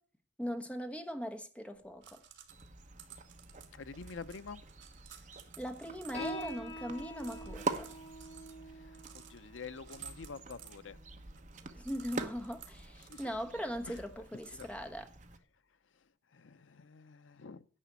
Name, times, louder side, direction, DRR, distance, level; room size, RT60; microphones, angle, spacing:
voice 1, 0.4-2.2 5.6-7.9 11.7-15.1, equal, 5° left, 1.1 m, -40 dB
sound 1, 1.7-15.1, right 9 dB, 70° right, 1.7 m, -57 dB
sound 2, 2.5-15.4, right 3 dB, 40° right, 1.1 m, -45 dB
voice 2, 3.7-4.6 7.7-7.8 8.6-11.0 13.0-13.5 13.8-14.0 14.5-14.7 15.8-17.6, left 4 dB, 85° left, 0.6 m, -48 dB
Piano, 6.1-13.2, equal, 35° left, 3.3 m, -47 dB
10.0 x 6.1 x 8.1 m
head